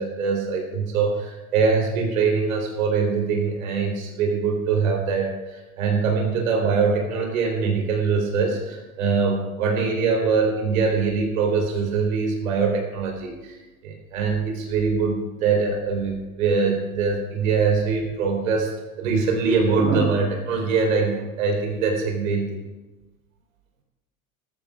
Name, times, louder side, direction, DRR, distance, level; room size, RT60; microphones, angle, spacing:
voice 1, 0.0-18.7 19.0-22.6, right 5 dB, 65° right, 1 dB, 3.9 m, -23 dB
19.0 x 14.0 x 2.4 m, 1.1 s
figure-of-eight pair, 80°, 43 cm